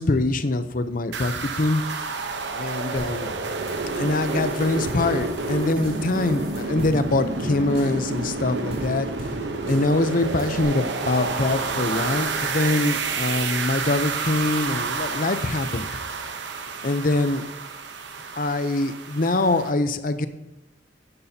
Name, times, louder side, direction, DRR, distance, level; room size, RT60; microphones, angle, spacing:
voice 1, 0.0-1.8 2.6-3.3 4.0-9.1 9.7-15.9 16.8-17.5 18.4-20.3, left 2 dB, 50° left, 11 dB, 0.7 m, -24 dB
sound 1, 1.1-19.7, right 4 dB, 75° right, 0.9 m, -29 dB
sound 2, 3.0-10.6, right 1 dB, 35° right, 2.7 m, -40 dB
12.5 x 11.0 x 2.8 m, 0.95 s
head